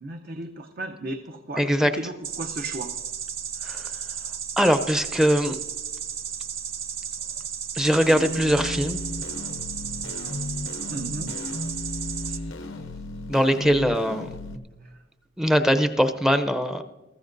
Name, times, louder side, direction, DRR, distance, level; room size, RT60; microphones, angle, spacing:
voice 1, 0.0-2.9 10.9-11.3 12.3-12.8 14.8-14.9, right 2 dB, 50° right, 4 dB, 0.8 m, -35 dB
voice 2, 1.6-1.9 3.6-3.8 4.6-5.6 7.8-9.0 13.3-14.3 15.4-16.8, equal, 5° right, 8 dB, 0.6 m, -21 dB
sound 1, 2.2-12.4, right 8 dB, 90° right, 0.8 m, -34 dB
sound 2, 8.0-14.6, left 1 dB, 85° left, 0.8 m, -35 dB
22.5 x 13.5 x 2.6 m, 1.2 s
head